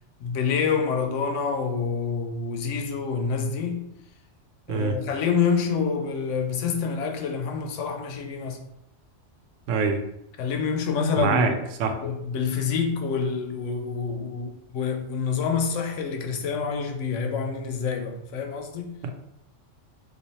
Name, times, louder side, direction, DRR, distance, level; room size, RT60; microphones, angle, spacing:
voice 1, 0.2-3.9 4.7-8.7 10.4-11.6 12.0-19.0, left 5 dB, 85° left, 0.9 m, -27 dB
voice 2, 9.7-10.0 11.2-11.5 11.8-11.9 19.0-19.1, right 5 dB, 90° right, 0.9 m, -24 dB
3.1 x 2.5 x 4.0 m
omnidirectional pair, 1.2 m